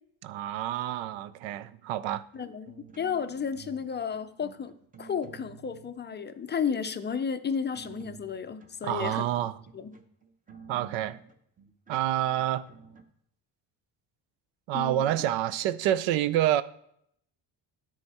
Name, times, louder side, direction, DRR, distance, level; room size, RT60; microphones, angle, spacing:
voice 1, 0.2-2.2 8.8-9.6 10.7-11.2 11.9-12.6 14.7-16.6, right 12 dB, 90° right, 0.6 m, -28 dB
voice 2, 2.3-10.0 14.7-15.1, left 7 dB, 25° left, 0.4 m, -33 dB
sound 1, 2.3-3.9 4.1-5.9 6.4-6.9 7.4-13.0, right 6 dB, 20° right, 0.8 m, -51 dB
9.7 x 4.9 x 4.2 m
cardioid pair, 105°, 44 cm